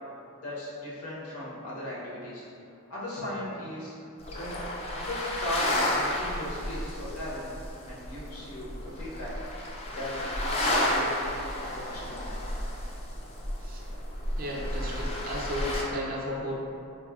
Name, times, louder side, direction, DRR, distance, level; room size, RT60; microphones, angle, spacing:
voice 1, 0.3-2.5 2.9-3.9 4.3-4.6 4.9-7.5 7.8-11.3 11.7-12.4, left 1 dB, 70° left, -7 dB, 0.8 m, -37 dB
sound 1, 4.2-15.8, left 1 dB, 30° left, 0.3 m, -32 dB
voice 2, 14.4-16.5, left 1 dB, 40° right, -3 dB, 0.4 m, -34 dB
3.9 x 2.0 x 2.3 m, 2.6 s
head